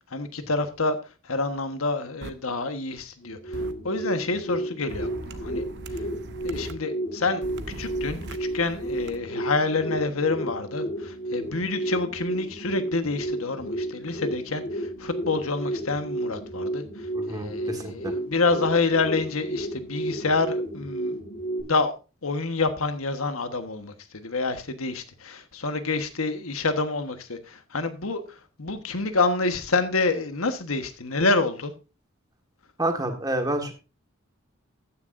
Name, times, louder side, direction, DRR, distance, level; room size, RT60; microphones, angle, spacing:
voice 1, 0.1-1.0 1.2-5.6 6.4-7.4 7.8-16.8 17.3-21.2 21.6-21.9 22.2-31.7, left 3 dB, 90° left, 1.3 m, -27 dB
sound 1, 2.2-2.3 3.5-3.7 4.9-6.7 7.4-9.2, right 2 dB, 55° right, 0.8 m, -39 dB
sound 2, 3.2-21.6, right 1 dB, 65° left, 6.3 m, -32 dB
voice 2, 17.1-18.1 32.8-33.7, right 1 dB, 20° right, 1.7 m, -28 dB
14.0 x 9.8 x 2.6 m
head